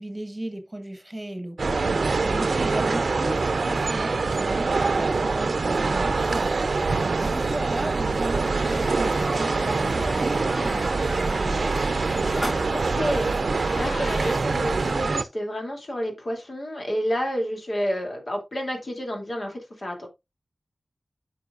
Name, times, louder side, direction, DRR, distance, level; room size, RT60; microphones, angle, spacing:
voice 1, 0.0-11.6, right 1 dB, 20° right, 1.4 m, -36 dB
sound 1, 1.6-15.2, right 3 dB, 75° right, 0.6 m, -24 dB
sound 2, 6.1-15.0, equal, 15° left, 3.8 m, -40 dB
sound 3, 8.4-14.4, left 1 dB, 85° left, 3.2 m, -38 dB
voice 2, 12.7-20.1, equal, 55° left, 2.8 m, -30 dB
9.4 x 6.0 x 2.5 m
wide cardioid pair, 65°, 0 cm